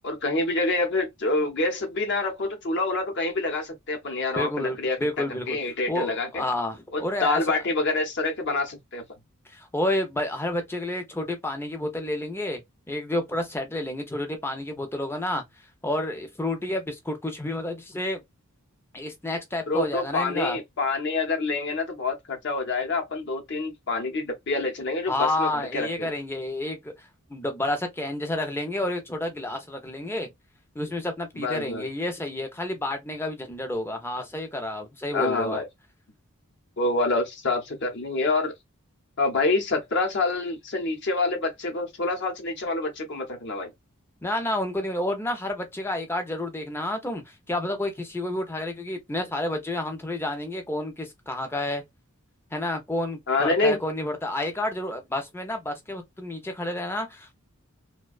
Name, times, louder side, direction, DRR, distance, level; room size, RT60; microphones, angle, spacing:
voice 1, 0.0-5.0 5.5-6.4 6.9-9.0 19.7-26.1 31.4-31.9 35.1-35.7 36.8-38.5 39.2-43.7 53.3-53.8, left 3 dB, 55° left, 0.8 m, -27 dB
voice 2, 4.4-5.6 5.9-7.6 9.5-12.6 12.9-15.4 15.8-18.2 18.9-20.6 25.1-30.3 30.8-35.6 44.2-51.8 52.5-57.3, left 1 dB, 10° left, 0.5 m, -30 dB
2.4 x 2.2 x 2.3 m
head